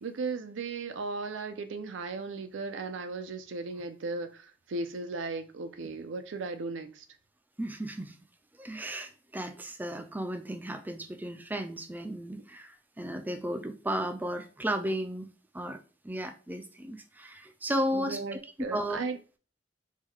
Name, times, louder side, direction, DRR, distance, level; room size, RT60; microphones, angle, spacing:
voice 1, 0.0-7.0 17.9-19.2, right 3 dB, 90° right, 0.5 m, -36 dB
voice 2, 7.6-8.2 8.6-15.3 15.5-15.8 16.0-18.4 18.7-19.0, equal, 10° right, 0.3 m, -34 dB
3.6 x 2.3 x 3.1 m
head